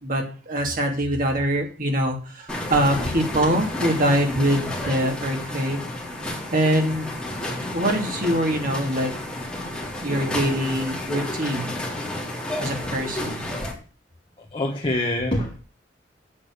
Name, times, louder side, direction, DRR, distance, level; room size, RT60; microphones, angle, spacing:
voice 1, 0.0-5.8 6.5-7.1 7.7-9.1 10.0-11.8 12.6-13.4, right 1 dB, 50° right, 2.8 m, -24 dB
sound 1, 2.5-13.7, left 1 dB, 5° left, 4.1 m, -31 dB
voice 2, 14.4-15.6, left 1 dB, 30° left, 1.6 m, -25 dB
8.8 x 7.5 x 6.9 m
head